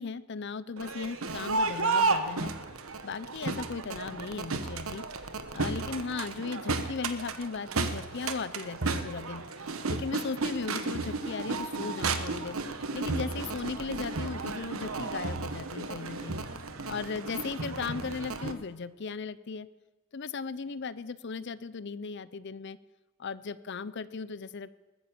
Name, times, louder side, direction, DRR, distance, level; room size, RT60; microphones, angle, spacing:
voice 1, 0.0-2.5 3.0-5.0 5.5-9.5 9.9-12.6 12.9-16.4 16.9-19.7 20.1-22.8 23.2-24.7, left 4 dB, 55° left, 16 dB, 0.6 m, -37 dB
Crowd, 0.8-18.5, right 3 dB, 85° right, 1.2 m, -33 dB
sound 1, 11.1-18.8, right 2 dB, 70° right, 1.3 m, -49 dB
20.5 x 9.4 x 7.4 m, 1.2 s
head